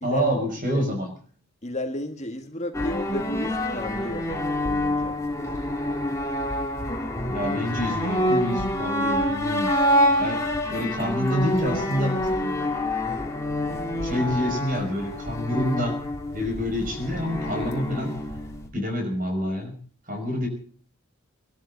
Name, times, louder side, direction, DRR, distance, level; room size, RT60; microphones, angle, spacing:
voice 1, 0.0-1.1 7.3-9.7 10.2-12.4 14.0-16.0 16.3-18.1 18.7-19.7 20.1-20.5, equal, 40° right, 4 dB, 5.8 m, -27 dB
voice 2, 1.6-4.3 4.6-5.2, left 1 dB, 30° left, 5 dB, 1.6 m, -32 dB
sound 1, 2.7-18.7, left 1 dB, 15° left, 2.5 m, -27 dB
24.0 x 12.5 x 4.0 m, 0.43 s
head